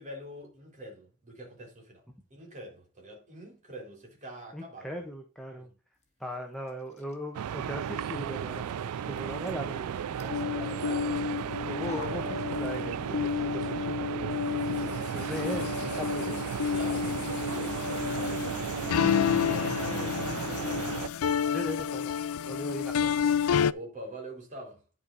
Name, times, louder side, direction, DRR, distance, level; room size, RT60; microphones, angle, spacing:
voice 1, 0.0-2.0 2.3-5.0 5.5-5.8 10.1-11.2 16.7-18.8 19.1-20.9 23.7-24.8, right 1 dB, 35° right, 3.9 m, -45 dB
voice 2, 4.5-5.7 6.2-10.0 11.7-14.0 15.1-16.4 21.5-22.2 22.4-23.1, equal, ahead, 1.1 m, -38 dB
sound 1, 5.9-13.1 13.4-20.6, left 3 dB, 30° left, 1.7 m, -56 dB
sound 2, 7.3-21.1, right 8 dB, 85° right, 0.3 m, -35 dB
sound 3, 10.3-23.7, left 8 dB, 70° left, 0.4 m, -30 dB
10.5 x 4.9 x 4.0 m
head